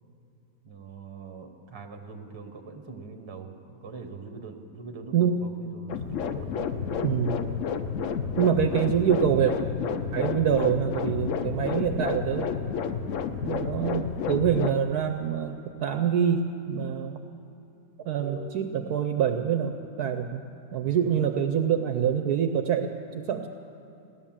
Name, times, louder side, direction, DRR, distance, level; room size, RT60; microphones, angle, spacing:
voice 1, 0.6-3.5 3.8-6.5 20.9-21.2, right 4 dB, 25° right, 4 dB, 0.6 m, -42 dB
sound 1, 5.9-14.7, left 6 dB, 70° left, 0.7 m, -30 dB
voice 2, 7.0-7.4 8.4-9.5 10.1-12.5 13.4-17.2 18.0-19.7 20.0-20.4 20.7-23.5, right 8 dB, 70° right, 7 dB, 1.0 m, -25 dB
17.0 x 11.0 x 7.3 m, 2.7 s
omnidirectional pair, 2.1 m